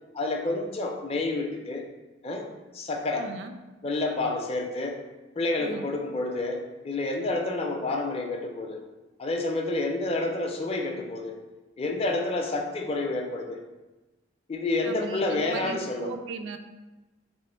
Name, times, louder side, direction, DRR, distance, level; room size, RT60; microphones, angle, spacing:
voice 1, 0.1-1.9 2.2-3.3 3.8-5.0 5.4-8.8 9.2-11.4 11.8-13.6 14.5-16.1, left 2 dB, 30° left, 3 dB, 0.4 m, -29 dB
voice 2, 3.2-3.6 5.6-5.9 14.8-16.6, right 4 dB, 65° right, 7 dB, 0.3 m, -38 dB
3.2 x 3.1 x 4.3 m, 1.1 s
head